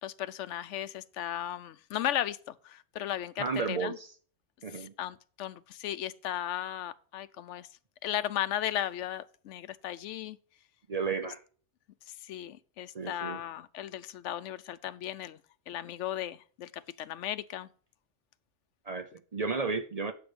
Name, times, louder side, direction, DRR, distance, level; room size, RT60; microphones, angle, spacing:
voice 1, 0.0-4.0 4.7-7.7 8.0-10.4 12.1-15.4 15.7-17.7, left 11 dB, 90° left, 0.9 m, -36 dB
voice 2, 3.4-4.1 4.6-4.9 10.9-11.4 12.9-13.4 18.9-20.1, right 4 dB, 40° right, 0.6 m, -33 dB
8.6 x 6.1 x 4.8 m
omnidirectional pair, 1.2 m